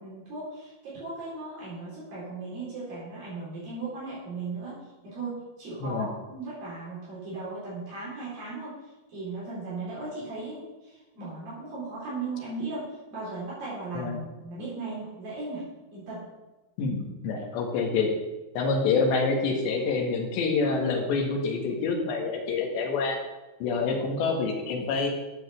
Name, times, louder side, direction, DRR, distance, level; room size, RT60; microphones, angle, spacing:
voice 1, 0.0-4.8 5.0-8.8 9.1-16.2, right 3 dB, 55° right, -9 dB, 5.8 m, -37 dB
voice 2, 16.8-18.1 18.6-23.2 23.6-25.1, left 4 dB, 80° left, 2 dB, 4.0 m, -27 dB
13.0 x 7.3 x 7.1 m, 1.1 s
omnidirectional pair, 5.0 m